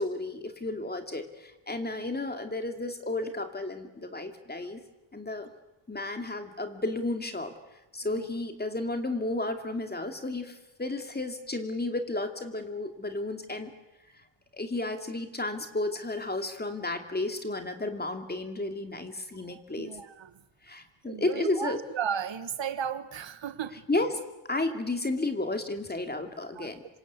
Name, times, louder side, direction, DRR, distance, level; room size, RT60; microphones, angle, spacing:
voice 1, 0.0-4.8 5.1-5.5 5.9-7.5 7.9-13.7 14.5-19.9 20.6-21.8 23.9-26.8, left 2 dB, 20° left, 6 dB, 2.6 m, -32 dB
voice 2, 19.5-20.3 21.0-23.8 26.5-26.7, right 8 dB, 70° right, 12 dB, 1.6 m, -35 dB
27.0 x 25.5 x 8.3 m, 0.98 s
wide cardioid pair, 155°, 46 cm